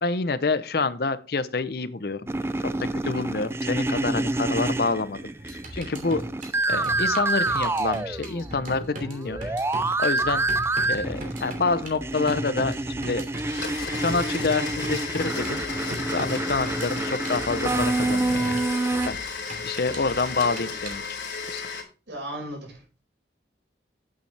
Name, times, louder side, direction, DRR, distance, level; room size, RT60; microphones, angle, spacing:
voice 1, 0.0-2.2 3.0-5.3 5.7-6.2 6.7-9.4 10.0-10.4 10.9-13.2 14.0-15.6 16.1-18.6 18.9-19.2 19.6-21.0 21.5-21.6, left 3 dB, 55° left, 14 dB, 0.6 m, -27 dB
sound 1, 2.3-8.6 8.9-19.1, right 2 dB, 15° right, 0.4 m, -28 dB
sound 2, 5.4-20.9, right 1 dB, 45° right, 2.9 m, -38 dB
Domestic sounds home sounds, 13.4-21.8, left 5 dB, 85° left, 3.0 m, -34 dB
voice 2, 20.8-21.3 22.1-23.0, right 1 dB, 80° right, 2 dB, 5.0 m, -38 dB
9.0 x 8.4 x 3.3 m, 0.35 s
head